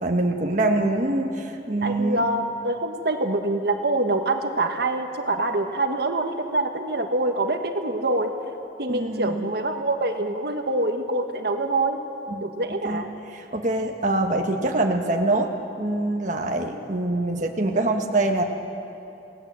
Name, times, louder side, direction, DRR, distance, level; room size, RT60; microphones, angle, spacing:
voice 1, 0.0-2.2 8.9-9.4 12.3-12.5 12.8-13.0 13.3-15.5 15.8-18.4, right 2 dB, 45° right, 2 dB, 1.4 m, -24 dB
voice 2, 1.8-8.3 8.8-12.0 12.4-13.1, right 2 dB, 60° right, 5 dB, 1.5 m, -25 dB
27.5 x 19.0 x 7.6 m, 2.9 s
head